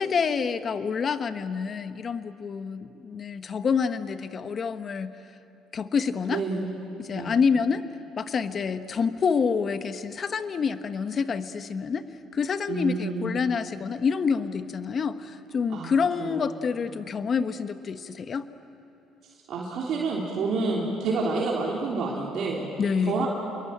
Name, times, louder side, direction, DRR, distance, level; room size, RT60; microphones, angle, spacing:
voice 1, 0.0-5.1 5.7-6.4 7.0-7.8 8.2-12.0 12.3-18.4 22.8-23.3, left 6 dB, 45° left, 11 dB, 1.3 m, -27 dB
voice 2, 6.3-6.6 7.1-7.3 12.7-13.4 15.7-15.9 16.2-16.4 19.5-22.6 23.0-23.3, right 3 dB, 60° right, -3 dB, 3.6 m, -28 dB
28.0 x 22.0 x 8.8 m, 2.8 s
supercardioid pair, 70°, 0 cm